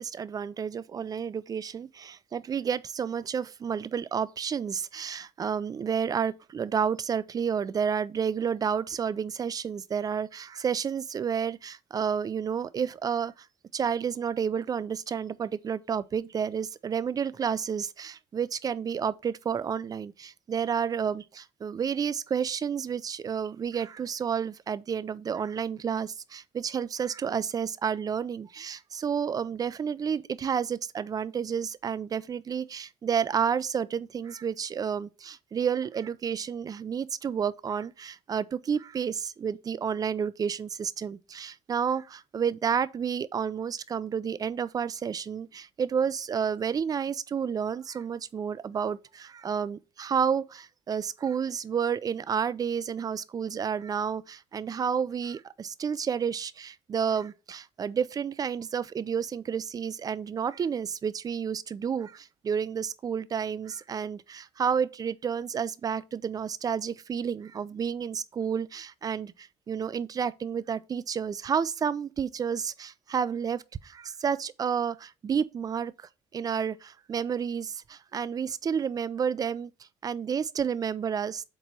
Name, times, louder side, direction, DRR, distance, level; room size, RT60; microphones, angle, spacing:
voice 1, 0.0-13.5 13.7-79.7 80.0-81.4, right 7 dB, 30° right, 0.4 m, -30 dB
8.1 x 3.0 x 4.5 m
cardioid pair, 130°, 13 cm